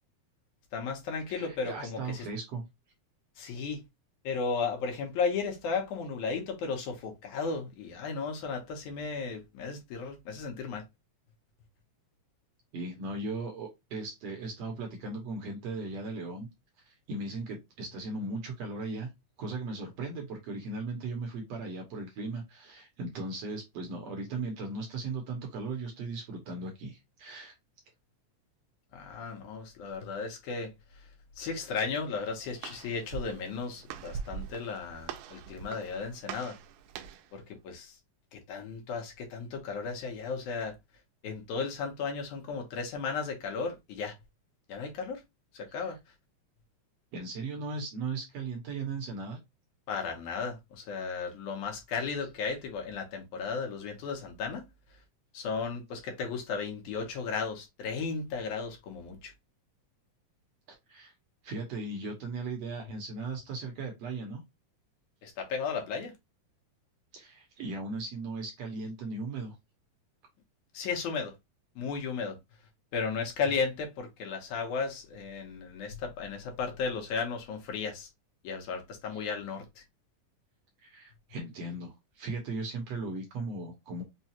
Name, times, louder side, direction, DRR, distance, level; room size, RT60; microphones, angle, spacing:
voice 1, 0.7-2.3 3.4-3.8 4.2-10.8 28.9-31.1 31.4-36.6 37.3-38.0 38.3-40.8 41.2-44.2 44.7-45.2 45.5-46.0 49.9-54.6 55.3-59.3 65.2-66.1 70.7-71.3 71.8-72.4 72.9-78.1 78.4-79.8, left 5 dB, 75° left, 2.4 m, -35 dB
voice 2, 1.3-2.6 12.7-16.5 16.9-19.1 19.4-27.5 45.7-45.9 47.1-49.4 60.9-61.1 61.4-64.4 67.1-69.5 79.1-79.2 80.8-84.0, right 3 dB, 65° right, 1.8 m, -37 dB
Walk footsteps, 32.0-37.3, right 7 dB, 85° right, 2.1 m, -43 dB
5.6 x 2.3 x 2.8 m
omnidirectional pair, 3.6 m